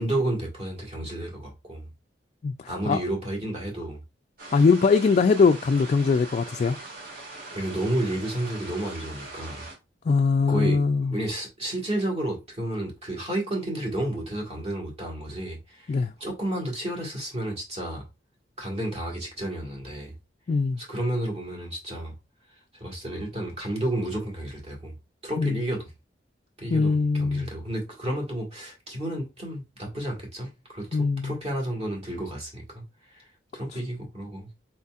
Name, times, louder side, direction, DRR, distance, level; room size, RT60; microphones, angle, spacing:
voice 1, 0.0-1.9 2.6-4.0 7.5-9.6 10.5-10.8 11.1-18.1 18.6-20.1 20.8-22.1 22.8-25.0 25.2-25.9 26.6-32.8 33.1-33.2 33.5-34.5, right 1 dB, 35° right, 1.7 m, -31 dB
sound 1, 4.4-9.7, right 2 dB, 55° right, 1.6 m, -41 dB
voice 2, 4.5-6.8 10.1-11.1 15.9-16.1 20.5-20.8 25.4-25.6 26.7-27.5 30.9-31.3, left 4 dB, 40° left, 0.3 m, -21 dB
4.4 x 4.1 x 2.4 m
head